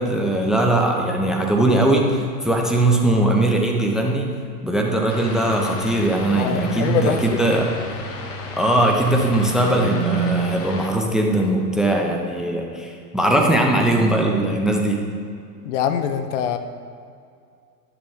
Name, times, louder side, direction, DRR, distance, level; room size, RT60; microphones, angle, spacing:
voice 1, 0.0-4.3 4.6-7.7 8.5-15.0, right 1 dB, ahead, 1 dB, 0.6 m, -20 dB
sound 1, 5.1-10.9, left 3 dB, 30° left, 1.1 m, -34 dB
voice 2, 6.4-7.4 15.7-16.6, left 9 dB, 50° left, 9 dB, 0.6 m, -23 dB
sound 2, 9.3-10.9 12.9-15.3, right 8 dB, 70° right, 0.7 m, -32 dB
12.0 x 6.9 x 3.3 m, 2.4 s
hypercardioid pair, 100°, 49 cm